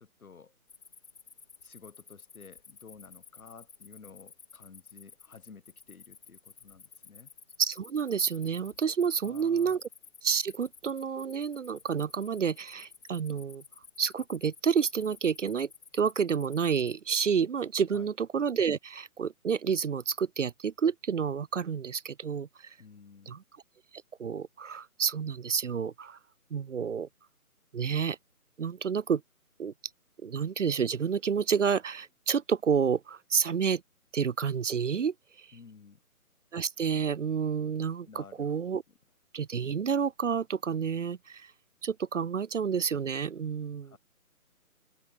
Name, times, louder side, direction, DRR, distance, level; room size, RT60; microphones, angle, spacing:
voice 1, 0.0-0.5 1.6-7.3 9.2-9.8 17.9-18.1 22.8-23.4 35.5-36.0 38.1-38.5 43.8-44.0, left 5 dB, 75° left, 1.3 m, -52 dB
Cricket, 0.7-17.0, left 6 dB, 45° left, 6.4 m, -53 dB
voice 2, 7.6-9.8 10.2-13.6 14.0-22.7 23.3-23.4 24.2-26.2 26.5-27.1 27.7-28.2 28.6-29.2 29.6-29.7 30.2-33.8 34.1-35.5 36.5-38.8 39.3-41.5 41.8-44.0, right 6 dB, 55° right, 0.5 m, -29 dB
figure-of-eight pair, 170°, 44 cm